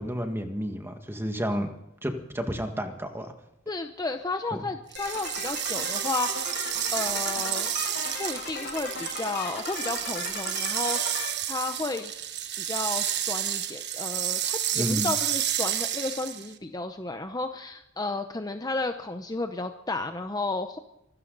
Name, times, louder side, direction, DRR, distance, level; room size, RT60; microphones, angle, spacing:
voice 1, 0.0-1.7 2.0-3.3 4.5-4.6 14.7-15.1, equal, 10° right, 5 dB, 1.8 m, -31 dB
voice 2, 3.7-6.5 6.9-7.7 8.2-12.1 12.6-20.8, left 3 dB, 20° left, 7 dB, 0.8 m, -33 dB
sound 1, 4.9-16.5, right 11 dB, 55° right, 1.2 m, -30 dB
sound 2, 5.0-11.3, left 4 dB, 55° left, 6.3 m, -37 dB
25.0 x 13.0 x 4.0 m, 0.86 s
head